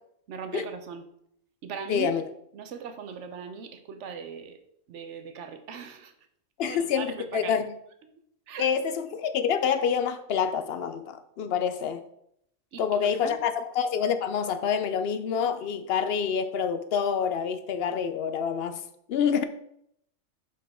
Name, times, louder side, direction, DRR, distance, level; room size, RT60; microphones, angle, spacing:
voice 1, 0.3-1.0 1.6-2.1 2.5-4.6 4.9-6.1 6.6-7.6 8.5-8.7 12.7-13.4, right 6 dB, 70° right, 1.0 m, -39 dB
voice 2, 1.9-2.2 6.6-7.6 8.6-12.0 12.8-18.8 19.1-19.4, left 7 dB, 60° left, 0.7 m, -27 dB
5.4 x 5.3 x 4.2 m
omnidirectional pair, 1.3 m